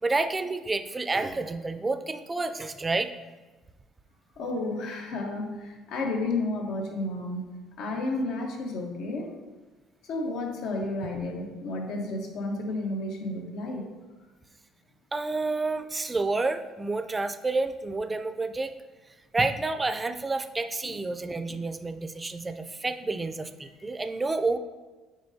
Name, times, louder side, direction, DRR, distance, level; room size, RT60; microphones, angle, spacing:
voice 1, 0.0-3.1 15.1-18.7 19.3-24.6, right 3 dB, 20° right, 9 dB, 0.4 m, -29 dB
voice 2, 4.4-7.4 7.8-9.4 10.0-13.9, left 2 dB, 75° left, 2 dB, 1.1 m, -32 dB
7.8 x 5.1 x 2.7 m, 1.3 s
supercardioid pair, 90°, 0 cm